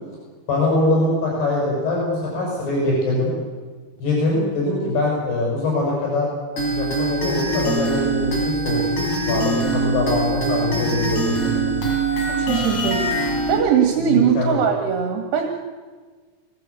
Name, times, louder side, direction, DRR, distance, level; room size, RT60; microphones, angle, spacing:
voice 1, 0.5-3.3 4.0-6.3 6.6-11.7 14.0-14.6, left 2 dB, 70° left, -3 dB, 8.4 m, -23 dB
sound 1, 6.6-13.6, right 2 dB, 45° left, 6.2 m, -23 dB
voice 2, 12.2-13.0 13.5-15.5, right 8 dB, 80° right, 3 dB, 4.0 m, -20 dB
24.0 x 17.5 x 8.3 m, 1.4 s
omnidirectional pair, 4.8 m